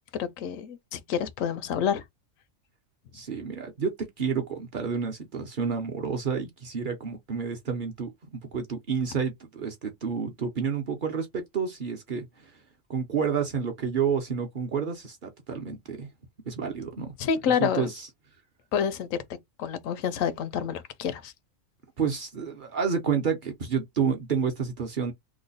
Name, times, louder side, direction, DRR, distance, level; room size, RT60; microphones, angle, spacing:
voice 1, 0.2-2.0 17.2-17.9 18.7-19.2 19.6-21.3, left 7 dB, 85° left, 1.0 m, -28 dB
voice 2, 3.1-8.1 8.5-12.5 12.9-16.1 16.5-17.1 17.6-18.1 22.0-25.1, right 6 dB, 50° right, 0.7 m, -29 dB
3.0 x 2.1 x 3.9 m
omnidirectional pair, 1.3 m